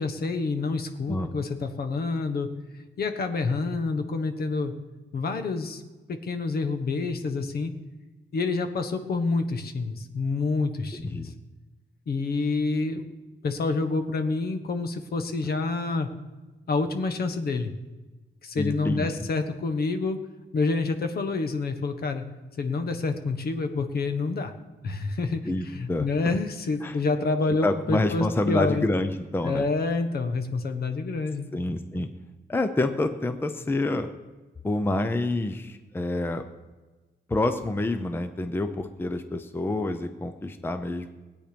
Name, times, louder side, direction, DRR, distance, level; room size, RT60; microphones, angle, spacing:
voice 1, 0.0-2.5 3.0-4.7 5.1-5.8 6.1-7.7 8.3-11.3 12.1-13.1 13.4-16.1 16.7-17.7 18.4-20.2 20.5-22.2 22.6-24.5 24.8-28.8 29.4-31.5, left 3 dB, 60° left, 8 dB, 1.2 m, -28 dB
voice 2, 10.9-11.3 18.6-19.1 25.5-26.1 26.8-27.0 27.6-29.7 31.5-32.1 32.5-34.1 34.6-36.4 37.3-41.1, left 2 dB, 10° left, 8 dB, 0.6 m, -27 dB
20.0 x 8.8 x 5.2 m, 1.2 s
wide cardioid pair, 170°, 18 cm